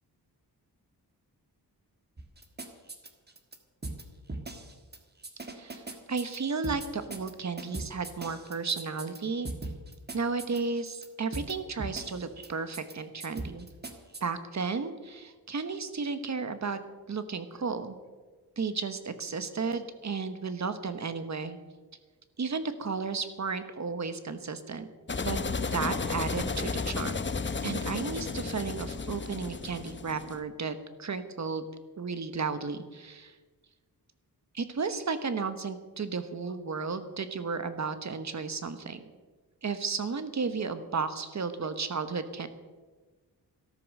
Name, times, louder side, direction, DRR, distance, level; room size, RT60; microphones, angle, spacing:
sound 1, 2.2-3.6 3.8-4.0 4.3-5.0 5.2-6.4 6.6-7.3 7.6-9.2 9.5-11.1 11.3-11.5 11.8-12.5 12.7-12.9 13.2-14.2, right 2 dB, 25° right, 1.5 m, -39 dB
voice 1, 5.6-9.5 10.1-13.7 14.2-16.8 17.1-17.9 18.6-21.6 22.4-24.9 25.2-25.4 25.7-27.2 27.6-31.6 32.0-33.4 34.5-39.0 39.6-42.5, right 4 dB, 45° right, 10 dB, 1.1 m, -33 dB
sound 2, 25.1-30.4, left 4 dB, 30° left, 0.8 m, -33 dB
13.5 x 13.0 x 6.5 m, 1.3 s
wide cardioid pair, 155°, 38 cm